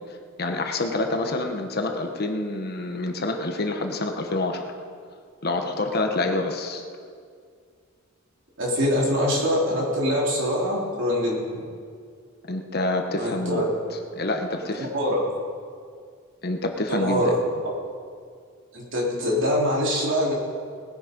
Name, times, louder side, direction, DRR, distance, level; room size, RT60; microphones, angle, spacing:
voice 1, 0.4-4.6 5.4-6.8 12.5-13.7 14.2-14.9 16.4-17.2, left 2 dB, 50° left, 4 dB, 1.2 m, -27 dB
voice 2, 8.6-11.6 13.2-13.6 14.9-15.3 16.9-17.4 18.7-20.3, equal, 65° right, -3 dB, 3.5 m, -24 dB
19.5 x 10.0 x 5.3 m, 2.1 s
head